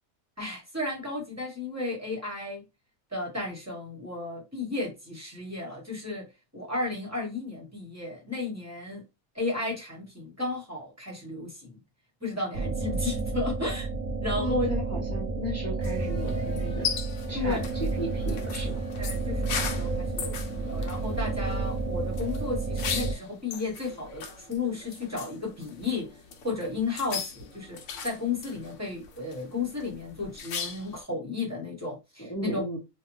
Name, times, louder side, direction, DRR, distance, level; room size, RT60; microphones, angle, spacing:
voice 1, 0.4-2.6 3.1-6.3 6.5-9.0 9.3-11.8 12.2-13.9 14.2-14.7 17.3-17.7 19.0-26.1 26.4-32.6, left 3 dB, 15° right, 0.9 m, -33 dB
sound 1, 12.5-23.1, right 3 dB, 75° right, 1.0 m, -31 dB
voice 2, 14.4-16.9 17.3-18.8 32.2-32.8, equal, 25° left, 0.3 m, -35 dB
sound 2, 15.8-31.0, left 6 dB, 65° left, 0.9 m, -39 dB
2.6 x 2.3 x 3.0 m
omnidirectional pair, 1.5 m